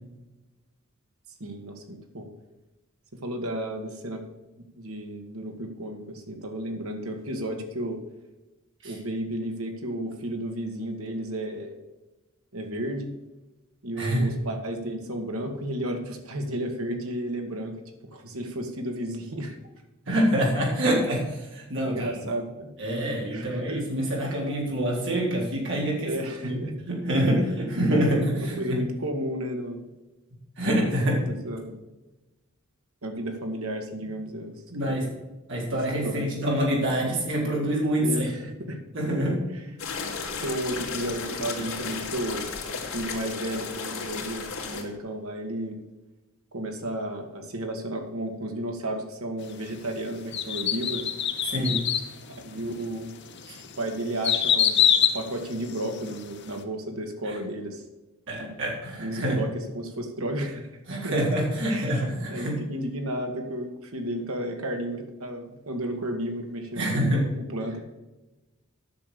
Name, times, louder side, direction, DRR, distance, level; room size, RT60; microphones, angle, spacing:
voice 1, 1.4-2.3 3.2-4.2 4.7-8.0 8.8-11.7 12.5-13.1 13.8-17.8 18.1-19.6 21.9-22.7 23.3-23.8 26.0-26.7 27.4-27.5 28.4-29.9 31.2-31.8 33.0-34.5 34.8-35.0 36.0-36.3 38.0-38.8 40.4-45.8 46.5-51.1 52.3-53.1 53.8-54.8 55.1-57.8 58.4-58.5 59.0-60.7 61.0-61.2 61.7-62.0 62.3-67.1 67.4-67.9, right 1 dB, 80° right, 4 dB, 1.8 m, -33 dB
voice 2, 14.0-14.3 20.1-22.2 22.8-26.1 26.4-28.8 30.6-31.2 34.7-35.0 35.5-38.3 38.9-39.4 51.5-51.8 53.5-53.6 57.2-57.4 58.3-59.4 60.8-62.6 66.8-67.2, equal, 60° right, -3 dB, 4.0 m, -26 dB
sound 1, 39.8-44.8, left 5 dB, 75° left, 2.5 m, -34 dB
sound 2, 50.3-52.1 52.7-52.8 53.4-56.2 56.5-56.6, left 9 dB, 55° left, 1.0 m, -24 dB
10.0 x 6.7 x 6.8 m, 1.1 s
head